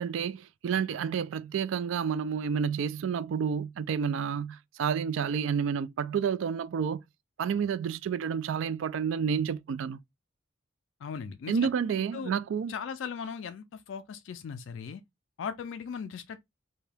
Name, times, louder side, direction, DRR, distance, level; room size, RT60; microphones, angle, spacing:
voice 1, 0.0-7.0 7.4-10.0 11.5-12.7, right 7 dB, 70° right, 0.3 m, -30 dB
voice 2, 11.0-11.7 12.1-12.3 12.7-15.0 15.4-16.4, left 6 dB, 70° left, 0.3 m, -38 dB
2.7 x 2.2 x 3.3 m
head